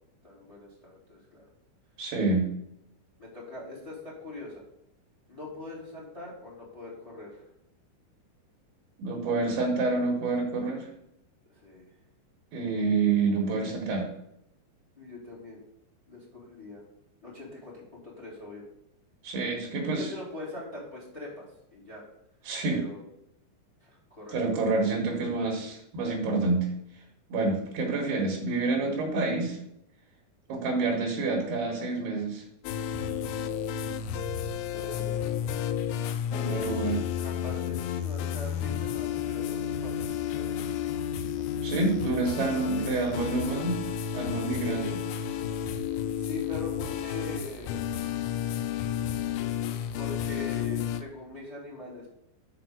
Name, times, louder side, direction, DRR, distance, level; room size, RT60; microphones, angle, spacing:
voice 1, 0.2-1.4 3.2-4.6 5.3-7.4 11.5-11.9 15.0-15.6 16.1-16.8 17.2-18.6 19.8-22.1 22.7-23.0 23.8-24.8 25.1-25.2 34.7-35.4 37.2-40.7 41.4-43.1 44.6-44.9 46.1-47.9 49.9-52.1, left 2 dB, 10° left, -4 dB, 2.7 m, -43 dB
voice 2, 2.0-2.5 9.0-10.9 12.5-14.1 19.2-20.1 22.4-22.8 24.3-26.7 27.3-29.6 30.5-32.4 36.3-37.1 41.6-43.8 44.1-44.9, right 3 dB, 70° right, 0 dB, 3.4 m, -28 dB
sound 1, 32.6-51.0, left 9 dB, 90° left, 3.1 m, -32 dB
6.8 x 5.8 x 6.6 m, 0.78 s
omnidirectional pair, 5.4 m